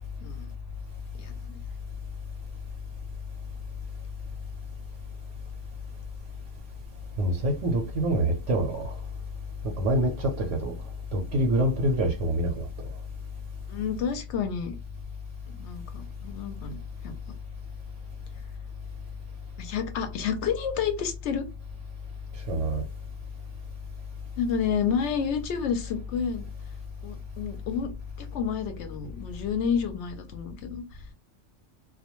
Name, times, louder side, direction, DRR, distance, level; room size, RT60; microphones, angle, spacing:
voice 1, 0.2-0.5 1.2-1.6 13.7-14.8 15.5-16.8 17.0-17.1 19.6-21.5 24.4-26.4 27.0-27.9 28.2-30.8, left 7 dB, 70° left, 0.8 m, -30 dB
voice 2, 7.2-8.9 9.8-10.7 11.1-12.7 22.5-22.8, right 1 dB, 75° right, 0.9 m, -26 dB
2.3 x 2.2 x 2.9 m
omnidirectional pair, 1.3 m